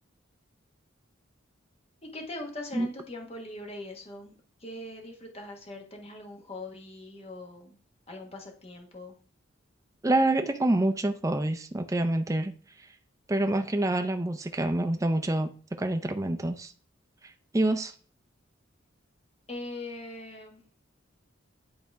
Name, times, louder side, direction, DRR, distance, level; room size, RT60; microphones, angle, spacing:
voice 1, 2.0-4.3 4.6-7.8 8.1-9.1 19.5-20.8, left 1 dB, 30° left, 2 dB, 1.4 m, -41 dB
voice 2, 10.0-12.5 13.3-15.5 15.8-16.7 17.2-17.9, right 1 dB, 15° right, 6 dB, 0.4 m, -27 dB
10.5 x 4.1 x 3.5 m, 0.42 s
head